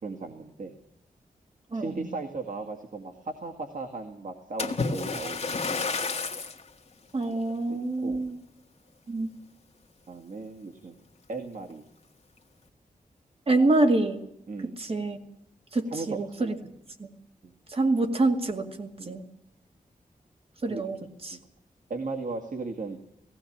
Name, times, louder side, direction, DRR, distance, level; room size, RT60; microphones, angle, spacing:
voice 1, 0.0-0.7 1.7-6.1 7.7-8.3 10.1-11.0 11.3-11.8 14.5-14.8 15.9-16.5 17.4-17.5 19.0-19.2 20.7-20.8 21.3-21.4 21.9-23.0, right 3 dB, 65° right, 3 dB, 2.0 m, -37 dB
voice 2, 1.7-2.1 7.1-8.4 9.1-9.3 13.5-14.2 14.8-15.2 15.7-16.6 17.0-17.1 17.7-19.2 20.6-21.0 21.2-21.4, right 2 dB, 45° right, 5 dB, 2.3 m, -26 dB
Splash splatter, 4.6-6.6 7.3-7.5 8.1-8.2, left 4 dB, 45° left, 1.6 m, -30 dB
18.0 x 17.0 x 8.7 m, 0.79 s
wide cardioid pair, 135°, 14 cm